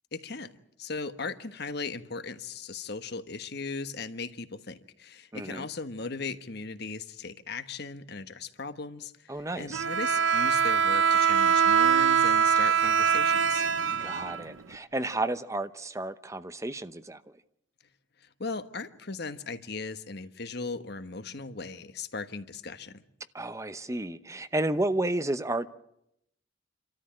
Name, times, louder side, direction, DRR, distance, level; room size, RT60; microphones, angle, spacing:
voice 1, 0.1-0.5 0.8-13.6 18.2-23.0, left 4 dB, 55° left, 1.3 m, -38 dB
voice 2, 5.3-5.7 9.3-9.8 14.0-17.2 23.3-25.7, right 2 dB, 15° right, 0.8 m, -32 dB
Bowed string instrument, 9.7-14.8, right 7 dB, 85° right, 0.8 m, -23 dB
28.5 x 13.5 x 8.8 m
head